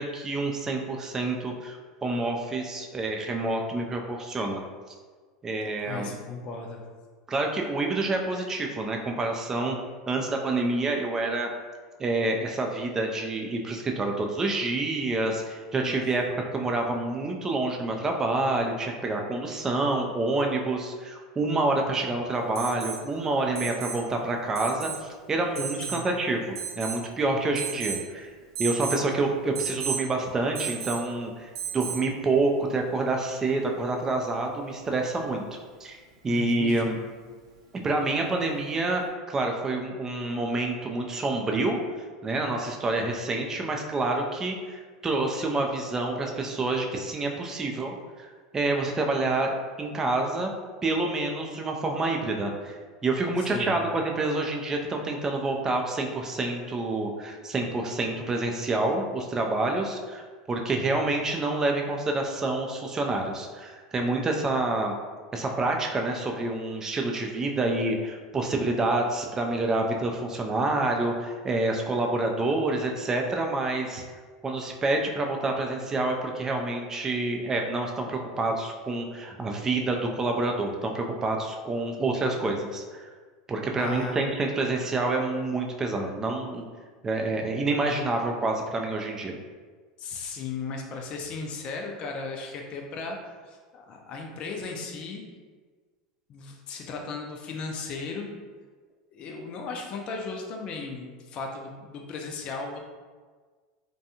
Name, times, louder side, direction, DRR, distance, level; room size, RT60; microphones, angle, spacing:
voice 1, 0.0-4.6 5.4-6.1 7.3-9.8 10.1-11.5 12.0-16.2 16.5-28.3 28.6-36.0 36.2-37.0 37.8-41.8 42.2-48.3 48.5-49.5 49.8-50.5 50.8-60.2 60.5-64.9 65.3-74.0 74.4-83.1 83.5-86.6 87.0-89.4, right 2 dB, 20° right, 2 dB, 0.4 m, -28 dB
voice 2, 5.9-6.9 15.7-16.1 25.8-26.1 36.3-36.9 53.4-53.8 83.8-84.2 90.0-95.2 96.3-98.3 99.1-102.8, left 4 dB, 45° left, 1 dB, 0.4 m, -36 dB
Alarm, 22.5-23.0 23.5-24.0 24.5-25.0 25.5-26.0 26.5-27.1 27.5-28.0 28.5-29.0 29.5-30.0 30.5-31.0 31.5-32.0 33.8-33.9, right 8 dB, 90° right, 0.5 m, -34 dB
2.6 x 2.2 x 2.7 m, 1.5 s
hypercardioid pair, 100°, 2 cm